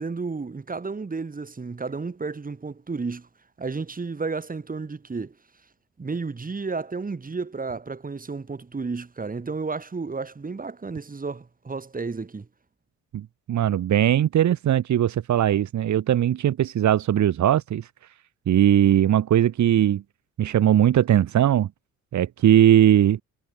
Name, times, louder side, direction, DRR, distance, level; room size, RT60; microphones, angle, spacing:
voice 1, 0.0-3.3 3.6-5.3 6.0-12.5, right 4 dB, 30° right, 6.7 m, -32 dB
voice 2, 13.1-17.9 18.5-20.0 20.4-21.7 22.1-23.2, right 11 dB, 70° right, 4.3 m, -19 dB
cardioid pair, 90°, 30 cm